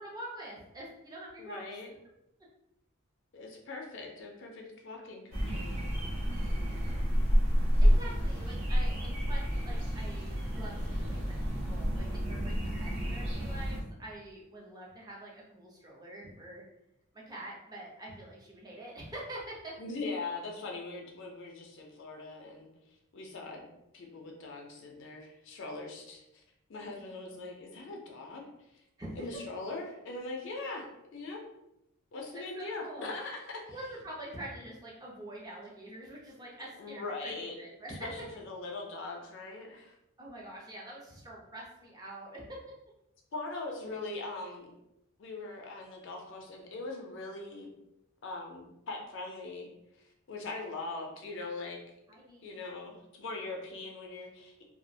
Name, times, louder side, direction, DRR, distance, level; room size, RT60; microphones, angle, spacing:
voice 1, 0.0-1.6 6.4-7.0 7.8-16.6 17.1-19.8 27.0-27.2 29.0-29.4 32.3-33.1 33.7-38.3 40.2-42.6 52.1-52.7, right 1 dB, 20° right, -4 dB, 0.5 m, -45 dB
voice 2, 1.4-1.9 3.3-6.0 19.8-22.7 23.1-23.7 23.9-26.2 26.7-28.8 29.2-30.9 31.1-31.4 32.1-33.7 36.8-37.6 37.9-40.0 43.3-44.7 45.2-47.7 48.2-49.7 50.3-51.8 52.4-54.6, left 3 dB, 55° left, 1 dB, 0.4 m, -41 dB
sound 1, 5.3-13.8, equal, 60° right, 0.8 m, -29 dB
2.3 x 2.1 x 2.6 m, 0.86 s
head